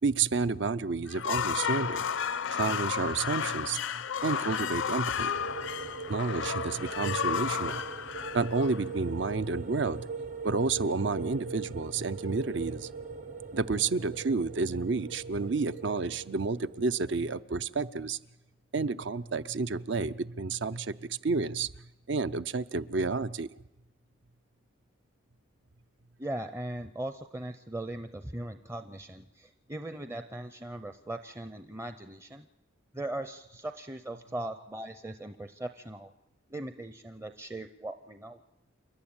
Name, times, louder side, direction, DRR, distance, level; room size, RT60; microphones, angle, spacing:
voice 1, 0.0-2.0 2.6-3.8 4.2-5.4 6.1-7.8 8.3-10.1 10.4-12.9 13.5-18.2 18.7-21.7 22.1-23.5, right 4 dB, 60° right, 14 dB, 0.7 m, -30 dB
sound 1, 1.1-9.2, left 7 dB, 70° left, 0.6 m, -33 dB
sound 2, 5.3-17.0, right 5 dB, 40° right, 1.0 m, -41 dB
voice 2, 26.2-32.5 32.9-36.1 36.5-38.4, right 1 dB, 15° right, 9 dB, 0.6 m, -39 dB
28.0 x 11.5 x 8.8 m, 0.99 s
head